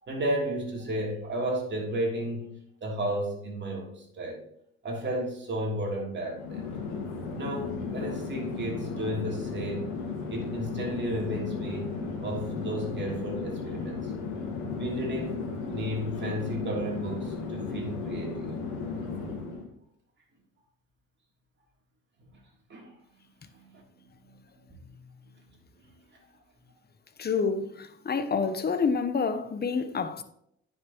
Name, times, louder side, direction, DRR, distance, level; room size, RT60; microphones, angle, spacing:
voice 1, 0.0-4.4 4.8-6.7 7.3-9.9 10.3-12.0 12.2-14.1 14.8-18.5 22.3-22.4 22.7-22.9 23.5-23.8 24.3-24.4 24.7-24.8, right 1 dB, 40° right, 3.2 m, -33 dB
Chatter / Fixed-wing aircraft airplane, 6.3-19.7, left 4 dB, 85° left, 2.0 m, -35 dB
voice 2, 27.2-30.2, left 5 dB, 35° left, 1.0 m, -28 dB
10.0 x 6.6 x 3.0 m
supercardioid pair, 75°, 29 cm